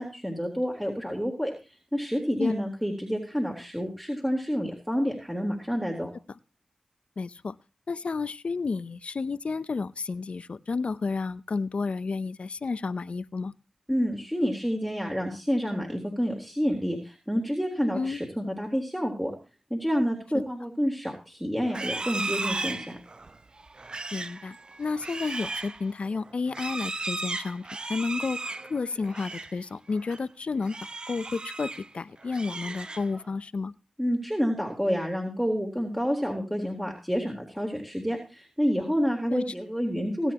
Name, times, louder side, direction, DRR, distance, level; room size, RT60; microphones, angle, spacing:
voice 1, 0.0-1.5 1.9-6.1 13.9-19.3 19.7-23.0 34.0-40.3, equal, 5° right, 0 dB, 3.5 m, -29 dB
voice 2, 7.2-7.5 7.9-13.5 17.9-18.2 24.1-28.4 28.7-30.8 31.1-33.7 39.3-39.4, left 4 dB, 65° left, 16 dB, 0.6 m, -31 dB
Livestock farm animals working animals, 21.6-29.6 29.9-30.2 30.6-31.9 32.2-33.3, right 3 dB, 45° right, 0.7 m, -36 dB
22.5 x 9.1 x 3.0 m, 0.32 s
cardioid pair, 45°, 2 cm